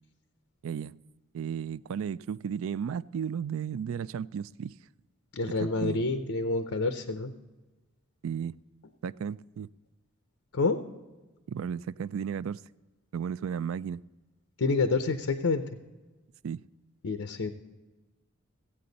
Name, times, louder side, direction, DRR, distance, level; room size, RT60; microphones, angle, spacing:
voice 1, 0.6-1.0 1.3-4.8 5.6-6.0 8.2-8.6 9.0-9.7 11.5-12.6 13.1-14.0 16.4-16.6, right 7 dB, 65° right, 0.3 m, -34 dB
voice 2, 5.3-7.3 10.5-10.8 14.6-15.6 17.0-17.5, left 3 dB, 85° left, 0.7 m, -28 dB
15.5 x 8.6 x 4.0 m
head